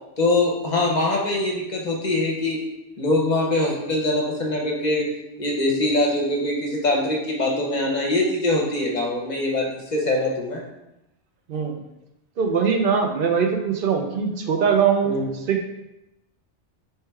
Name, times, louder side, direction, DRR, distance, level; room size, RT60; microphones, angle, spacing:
voice 1, 0.2-2.6 3.0-5.0 5.4-10.6 15.0-15.2, left 2 dB, 45° left, -1 dB, 0.8 m, -23 dB
voice 2, 11.5-11.8 12.4-15.6, right 6 dB, 60° right, 3 dB, 0.6 m, -22 dB
3.2 x 3.1 x 4.5 m, 0.90 s
omnidirectional pair, 1.2 m